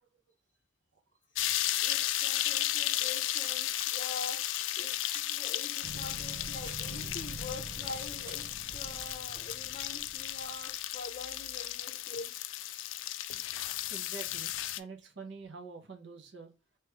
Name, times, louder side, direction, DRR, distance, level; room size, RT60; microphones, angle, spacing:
Frying Potatoes, 1.4-14.8, left 14 dB, 85° left, 0.3 m, -34 dB
sound 1, 1.7-2.2 3.5-4.1 4.9-5.4 6.3-6.9 7.8-8.5, right 1 dB, 15° right, 0.9 m, -53 dB
voice 1, 1.8-4.4 4.8-12.3, left 3 dB, 40° left, -2 dB, 0.6 m, -44 dB
sound 2, 5.8-10.6, right 2 dB, 45° right, 0.5 m, -46 dB
voice 2, 13.9-16.5, right 4 dB, 70° right, 3 dB, 0.8 m, -46 dB
3.1 x 3.0 x 3.3 m, 0.31 s
head